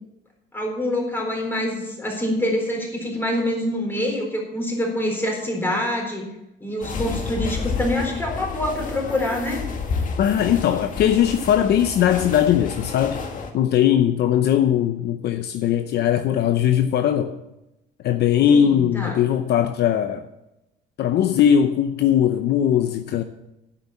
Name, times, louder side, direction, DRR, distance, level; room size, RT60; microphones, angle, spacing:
voice 1, 0.5-6.2 6.6-9.6 18.5-19.2, left 1 dB, 10° left, 4.1 m, -25 dB
sound 1, 6.8-13.5, left 4 dB, 45° left, 1.9 m, -30 dB
voice 2, 10.2-13.2 13.5-17.3 18.0-20.2 21.0-23.2, left 9 dB, 60° left, 0.7 m, -19 dB
10.0 x 8.1 x 7.2 m
cardioid pair, 135°, 19 cm